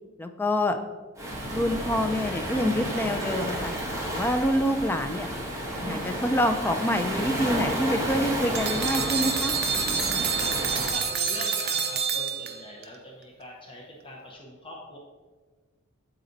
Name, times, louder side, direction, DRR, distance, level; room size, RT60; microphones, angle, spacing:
voice 1, 0.2-0.8 1.5-3.7 4.1-5.3 5.8-9.5, equal, 10° left, 6 dB, 0.4 m, -26 dB
Waves surf, 1.2-10.9, equal, 15° right, 1.1 m, -31 dB
sound 1, 8.5-12.8, right 6 dB, 50° right, 0.6 m, -28 dB
voice 2, 10.7-15.0, left 1 dB, 25° left, -1 dB, 0.8 m, -42 dB
7.9 x 4.1 x 3.9 m, 1.4 s
head